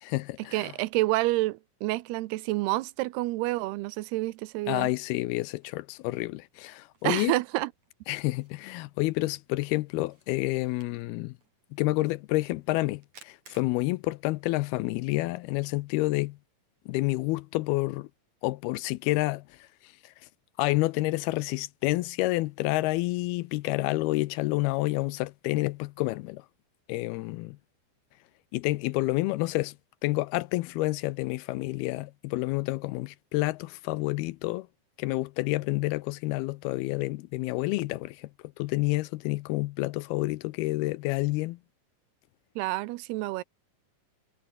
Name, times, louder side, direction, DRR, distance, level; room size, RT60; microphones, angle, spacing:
voice 1, 0.0-0.7 4.7-7.3 8.1-11.4 11.7-16.4 16.9-18.1 18.4-20.1 20.6-26.5 26.9-27.6 28.5-29.8 30.0-34.7 35.0-38.3 38.6-41.6, left 20 dB, 80° left, 2.4 m, -29 dB
voice 2, 0.5-4.9 7.0-7.7 42.6-43.4, right 19 dB, 80° right, 2.7 m, -28 dB
Camera, 3.2-15.2, right 5 dB, 45° right, 6.2 m, -63 dB
omnidirectional pair, 4.7 m